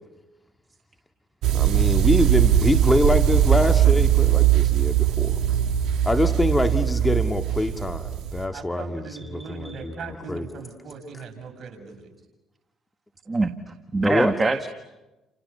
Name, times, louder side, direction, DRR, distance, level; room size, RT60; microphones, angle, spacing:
sound 1, 1.4-8.4, right 10 dB, 70° right, 2.3 m, -20 dB
voice 1, 1.5-5.4 6.0-9.0 9.3-9.9 10.3-10.4 14.0-14.3, left 1 dB, 15° left, 6 dB, 2.0 m, -24 dB
voice 2, 8.5-12.1, right 5 dB, 55° right, 4 dB, 7.1 m, -39 dB
voice 3, 9.4-9.8 13.3-13.5 13.9-14.7, right 3 dB, 30° right, 8 dB, 1.8 m, -24 dB
29.5 x 29.5 x 6.8 m, 1.0 s
hypercardioid pair, 60°, 0 cm